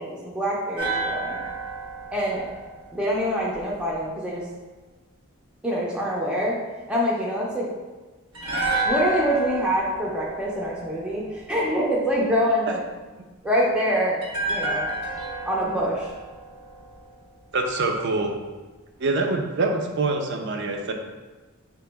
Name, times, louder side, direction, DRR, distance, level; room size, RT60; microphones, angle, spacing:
voice 1, 0.0-1.4 2.1-2.5 2.9-4.4 5.6-6.6 6.9-7.7 8.8-12.8 13.4-14.2 14.5-14.9 15.5-16.1, equal, 5° right, -5 dB, 0.5 m, -25 dB
sound 1, 0.8-3.9 8.3-11.6 14.2-17.4 17.7-17.8, right 2 dB, 85° right, 1.1 m, -31 dB
voice 2, 17.5-18.3 19.0-20.9, right 3 dB, 55° right, 4 dB, 0.5 m, -25 dB
4.4 x 2.9 x 3.4 m, 1.3 s
head